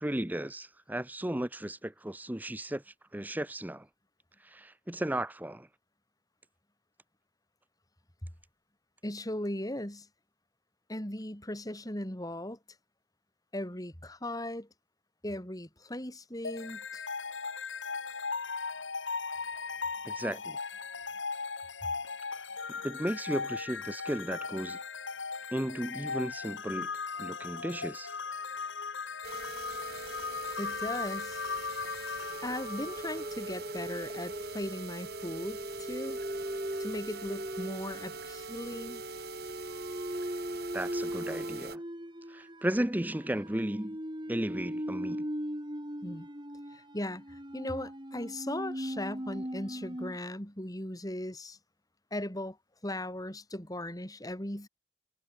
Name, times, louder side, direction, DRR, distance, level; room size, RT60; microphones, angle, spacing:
voice 1, 0.0-2.8 3.1-3.9 4.4-5.7 20.0-20.6 22.3-22.4 22.8-24.8 25.5-26.9 27.2-28.1 40.7-41.8 42.3-44.0 44.3-45.3, right 1 dB, 10° right, 0.7 m, -34 dB
voice 2, 9.0-10.1 10.9-12.6 13.5-14.7 15.2-17.0 30.6-31.4 32.4-36.2 36.8-39.0 46.0-46.3 46.7-51.6 52.1-52.6 52.8-54.7, left 1 dB, 20° left, 3.7 m, -38 dB
sound 1, 16.4-33.6, left 5 dB, 75° left, 2.1 m, -38 dB
sound 2, 29.2-41.8, right 4 dB, 55° right, 5.9 m, -43 dB
sound 3, 32.3-50.2, equal, 25° right, 4.3 m, -39 dB
head